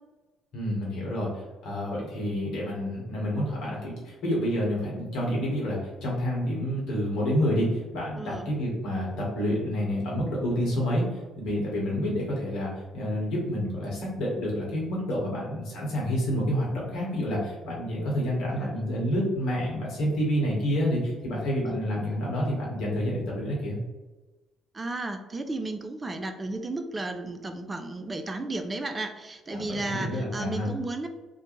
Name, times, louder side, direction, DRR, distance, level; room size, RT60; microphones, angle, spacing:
voice 1, 0.5-1.3 1.6-23.8 29.5-30.7, equal, 65° left, -4 dB, 1.0 m, -28 dB
voice 2, 8.2-8.5 18.5-18.8 21.6-21.8 24.7-31.1, right 2 dB, 25° right, 7 dB, 0.3 m, -34 dB
2.5 x 2.1 x 3.0 m, 1.2 s
hypercardioid pair, 50°, 0 cm